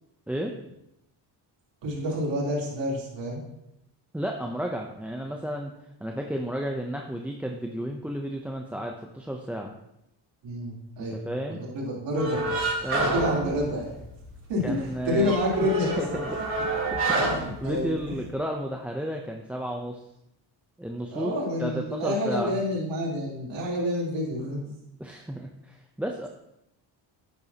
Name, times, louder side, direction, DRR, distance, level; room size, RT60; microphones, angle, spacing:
voice 1, 1.8-3.4 10.4-11.2 11.7-12.6 13.1-14.0 14.5-16.2 17.2-17.9 21.1-24.6, equal, 75° right, -5 dB, 3.7 m, -28 dB
voice 2, 4.1-5.7 6.0-9.7 11.1-11.6 12.8-13.6 14.6-16.4 16.7-20.1 20.8-21.3 21.6-22.6 25.0-26.3, equal, 5° right, 2 dB, 0.6 m, -33 dB
sound 1, 12.2-14.3 14.6-14.7 15.0-18.3, right 2 dB, 30° right, 3.5 m, -28 dB
10.5 x 9.5 x 2.9 m, 0.83 s
cardioid pair, 125°, 44 cm